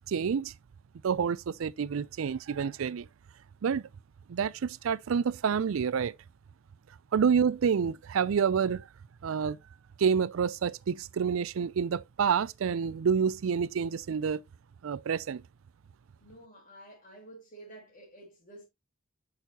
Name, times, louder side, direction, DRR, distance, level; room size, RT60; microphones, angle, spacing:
voice 1, 0.1-0.5 1.0-3.1 3.6-3.9 4.3-6.1 7.1-8.9 9.2-9.6 10.0-14.4 14.8-15.4, right 6 dB, 85° right, 0.4 m, -28 dB
voice 2, 16.2-18.6, right 1 dB, 40° left, 4.5 m, -50 dB
8.1 x 6.4 x 2.9 m
head